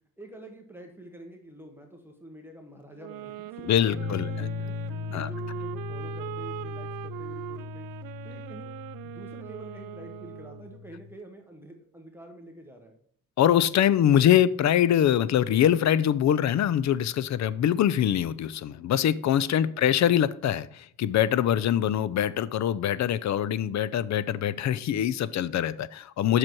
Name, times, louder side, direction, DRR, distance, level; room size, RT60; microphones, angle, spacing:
voice 1, 0.2-7.9 8.2-8.7 9.0-13.0 19.5-19.8 26.2-26.4, right 1 dB, 5° right, 2 dB, 1.1 m, -47 dB
sound 1, 3.0-10.8, right 15 dB, 75° right, 0.5 m, -41 dB
voice 2, 3.6-4.5 5.1-5.3 13.4-26.4, left 10 dB, 55° left, 18 dB, 0.5 m, -24 dB
sound 2, 3.9-11.1, left 5 dB, 30° left, 1.0 m, -38 dB
7.6 x 6.1 x 4.6 m, 0.63 s
cardioid pair, 105°, 35 cm